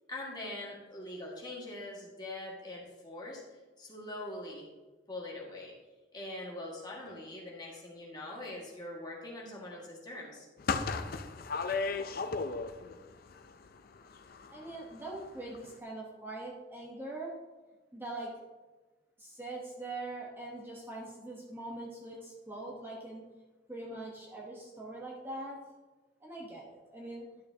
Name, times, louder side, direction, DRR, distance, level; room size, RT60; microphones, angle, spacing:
voice 1, 0.1-3.4 3.8-4.7 5.1-5.7 6.1-10.5 10.8-10.9, left 1 dB, 25° left, -3 dB, 1.9 m, -43 dB
sound 1, 10.6-13.0 13.3-14.8 15.1-15.3 15.5-15.7, left 4 dB, 55° left, 0.5 m, -35 dB
voice 2, 14.5-17.3 17.9-18.3 19.2-23.2 23.7-25.6 26.2-27.3, right 2 dB, 10° right, -4 dB, 1.1 m, -42 dB
11.5 x 6.6 x 2.8 m, 1.3 s
head